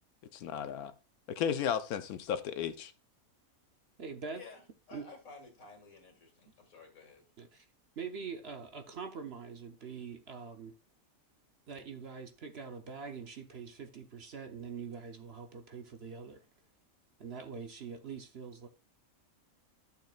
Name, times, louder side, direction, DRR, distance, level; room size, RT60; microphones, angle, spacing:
voice 1, 0.3-0.9 1.4-2.9, left 8 dB, 85° left, 1.2 m, -34 dB
voice 2, 4.0-4.4 4.9-5.0 7.4-7.7 8.0-10.7 11.7-16.4 17.2-18.7, right 5 dB, 50° right, 1.0 m, -44 dB
voice 3, 4.9-7.2, left 4 dB, 70° left, 2.5 m, -53 dB
12.0 x 6.6 x 2.4 m
omnidirectional pair, 1.5 m